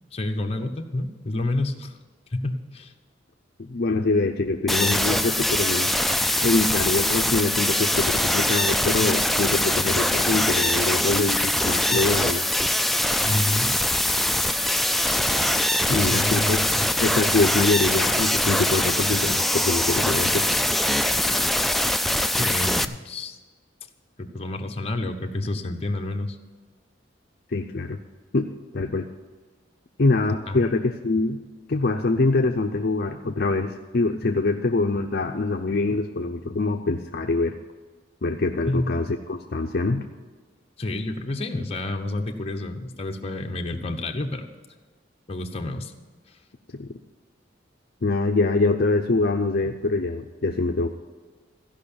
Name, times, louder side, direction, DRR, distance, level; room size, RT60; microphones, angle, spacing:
voice 1, 0.1-1.9 2.3-2.9 13.2-13.8 15.9-16.8 22.3-23.4 24.2-26.4 30.5-30.6 38.7-39.0 40.8-44.5 45.3-45.9, left 2 dB, 35° left, 4 dB, 0.9 m, -29 dB
voice 2, 3.6-5.9 6.4-12.5 15.9-16.6 17.0-20.5 27.5-28.0 28.3-29.1 30.0-31.4 31.7-37.5 38.2-40.1 46.7-47.0 48.0-50.9, left 3 dB, 55° left, 4 dB, 0.6 m, -24 dB
sound 1, 4.7-22.8, left 1 dB, ahead, 0.3 m, -23 dB
14.5 x 5.6 x 8.6 m, 1.4 s
head